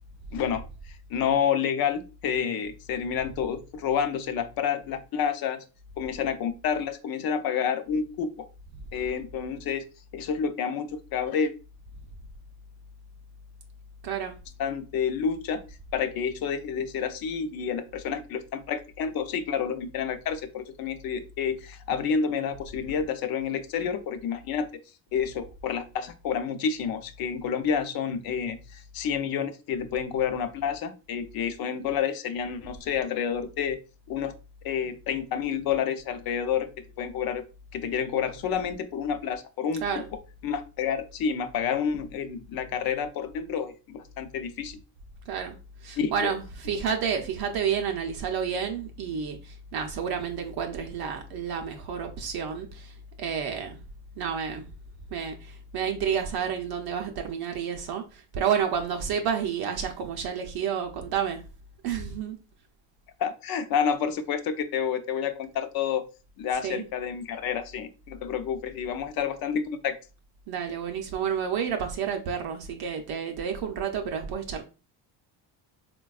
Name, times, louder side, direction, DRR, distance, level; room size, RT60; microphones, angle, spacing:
voice 1, 0.3-5.6 6.0-8.5 8.9-9.8 10.1-11.5 14.6-15.6 15.9-24.7 25.1-33.8 34.1-34.3 34.6-36.7 37.0-37.4 37.7-39.8 40.4-44.8 46.0-46.3 63.2-66.0 66.4-70.0, left 7 dB, 55° left, 0.5 m, -29 dB
voice 2, 14.0-14.4 39.8-40.1 45.3-53.8 54.1-54.7 55.1-61.4 61.8-62.4 66.5-66.9 70.5-74.6, right 7 dB, 55° right, 0.5 m, -30 dB
4.0 x 2.2 x 2.2 m
cardioid pair, 155°, 45 cm